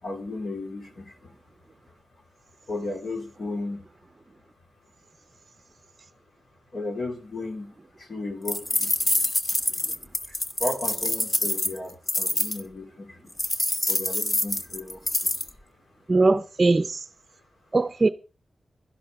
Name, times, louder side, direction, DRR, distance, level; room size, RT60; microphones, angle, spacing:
voice 1, 0.0-1.3 1.9-2.0 2.7-3.8 6.7-9.4 10.6-13.3 13.9-15.4, left 2 dB, 60° left, 3.0 m, -35 dB
sound 1, 8.5-12.6 13.4-15.5, left 1 dB, 30° left, 1.3 m, -26 dB
voice 2, 16.1-17.0 17.7-18.1, right 3 dB, 35° right, 0.6 m, -20 dB
17.0 x 12.0 x 3.7 m
wide cardioid pair, 95°, 0 cm